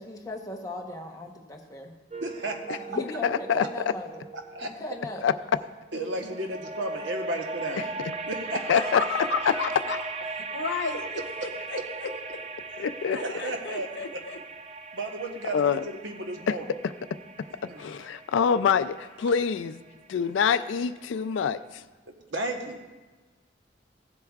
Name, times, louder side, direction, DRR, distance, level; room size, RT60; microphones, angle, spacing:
voice 1, 0.0-1.9 2.9-4.2 4.6-5.2, left 2 dB, 20° left, 1 dB, 1.0 m, -38 dB
sound 1, 2.1-5.4 6.1-21.0, right 3 dB, 35° right, 0.5 m, -39 dB
voice 2, 2.2-2.8 4.5-4.7 5.9-7.9 8.2-8.8 11.7-11.8 13.1-14.2 14.9-15.8 16.0-16.7 17.7-17.8 22.1-23.0, right 2 dB, 75° right, 3 dB, 1.1 m, -33 dB
voice 3, 3.2-3.6 5.2-5.3 8.7-9.0 9.4-9.6 12.8-13.2 15.5-15.8 16.5-16.6 17.8-19.8 20.1-21.8, left 6 dB, 85° left, 13 dB, 0.4 m, -25 dB
voice 4, 8.8-10.0 10.5-11.0 11.4-12.1 13.1-14.4, left 5 dB, 65° left, 6 dB, 0.8 m, -32 dB
15.5 x 7.9 x 2.4 m, 1.3 s
head